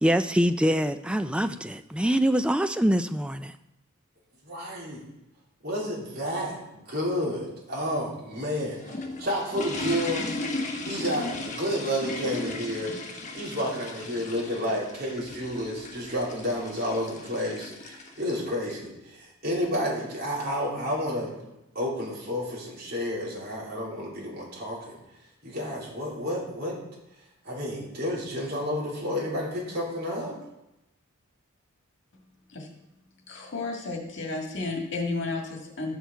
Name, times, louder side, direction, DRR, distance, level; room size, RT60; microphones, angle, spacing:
voice 1, 0.0-3.5, equal, 5° right, 10 dB, 0.3 m, -24 dB
voice 2, 4.4-5.0 5.6-25.0 25.4-26.8 27.4-30.3, equal, 45° right, -5 dB, 3.5 m, -31 dB
sound 1, 8.7-18.8, left 2 dB, 35° left, 1.1 m, -36 dB
voice 3, 33.3-35.9, left 3 dB, 55° left, 1 dB, 1.8 m, -32 dB
12.5 x 6.3 x 4.7 m, 0.92 s
head